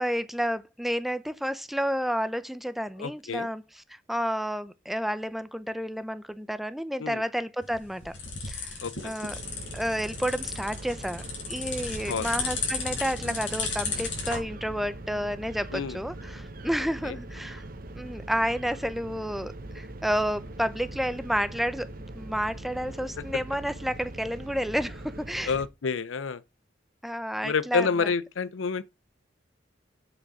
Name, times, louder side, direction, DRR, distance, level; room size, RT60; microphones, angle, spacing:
voice 1, 0.0-3.6 3.9-8.1 8.5-8.8 9.0-9.3 9.7-17.6 18.0-21.9 22.1-25.5 27.0-28.1, equal, ahead, 0.6 m, -30 dB
voice 2, 3.0-3.5 7.0-7.2 8.8-9.1 12.1-12.3 15.7-16.0 17.0-17.2 25.5-26.4 27.4-28.8, left 5 dB, 90° left, 0.6 m, -29 dB
sound 1, 7.6-14.4, left 4 dB, 75° left, 4.7 m, -34 dB
sound 2, 9.3-25.7, right 2 dB, 50° right, 1.1 m, -42 dB
7.8 x 6.3 x 6.2 m
head